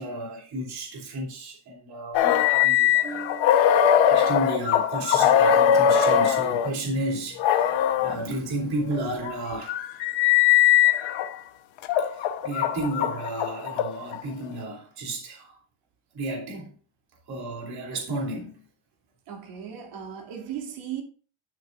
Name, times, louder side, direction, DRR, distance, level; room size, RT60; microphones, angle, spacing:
voice 1, 0.0-3.7 4.0-10.1 12.0-15.6 16.1-16.7 17.3-18.7, right 1 dB, 50° right, 2.7 m, -33 dB
sound 1, 2.1-6.7 7.4-8.2 8.9-11.3 11.8-14.2, left 9 dB, 70° left, 0.9 m, -21 dB
voice 2, 19.3-21.0, right 9 dB, 90° right, 2.4 m, -36 dB
11.0 x 6.6 x 2.4 m
cardioid pair, 175°, 48 cm